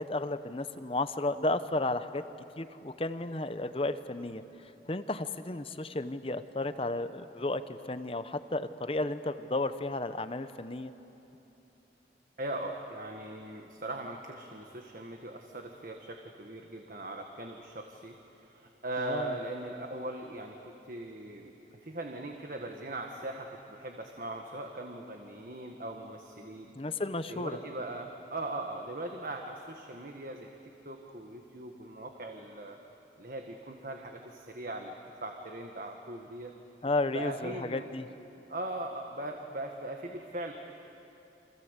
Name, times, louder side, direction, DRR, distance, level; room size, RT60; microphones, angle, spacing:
voice 1, 0.0-2.2 2.6-10.9 19.0-19.3 26.8-27.6 36.8-38.1, left 2 dB, 30° left, 11 dB, 0.8 m, -33 dB
voice 2, 12.4-18.2 18.4-21.5 21.8-26.7 27.3-32.8 33.2-34.9 35.2-36.5 37.1-37.9 38.5-40.5, right 1 dB, 50° right, 3 dB, 1.5 m, -40 dB
29.5 x 25.0 x 8.2 m, 2.9 s
head